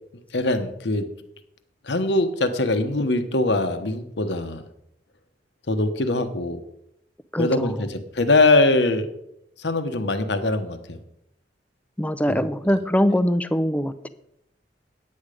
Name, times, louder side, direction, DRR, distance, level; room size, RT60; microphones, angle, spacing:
voice 1, 0.3-1.1 1.8-4.6 5.7-6.6 7.4-9.1 9.6-11.0 12.3-12.5, left 2 dB, 80° left, 8 dB, 1.0 m, -22 dB
voice 2, 7.3-7.7 12.0-14.1, equal, 10° left, 13 dB, 0.5 m, -22 dB
9.5 x 8.7 x 5.0 m, 0.79 s
head